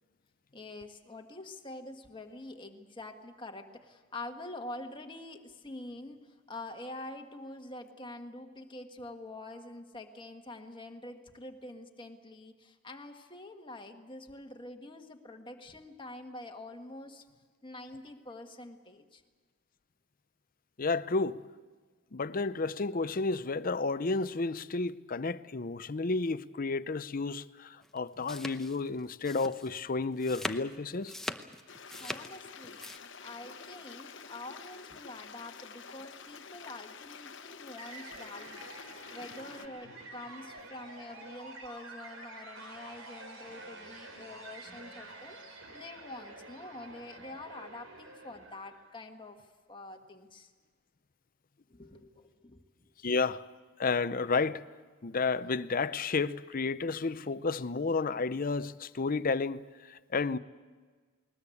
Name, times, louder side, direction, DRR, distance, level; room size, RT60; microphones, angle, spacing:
voice 1, 0.5-17.2 17.6-19.2 31.9-32.8 33.2-38.7 39.1-50.5 51.7-52.9, left 2 dB, 25° left, 1.6 m, -46 dB
voice 2, 20.8-21.4 22.1-31.1 53.0-53.4 53.8-54.6 55.0-60.4, left 4 dB, 45° left, 0.6 m, -31 dB
sound 1, 27.8-33.0, left 1 dB, ahead, 0.8 m, -41 dB
Stream, 31.7-39.7, left 6 dB, 60° left, 1.1 m, -48 dB
sound 2, 37.8-48.9, right 2 dB, 80° right, 4.0 m, -48 dB
20.5 x 20.5 x 8.5 m
head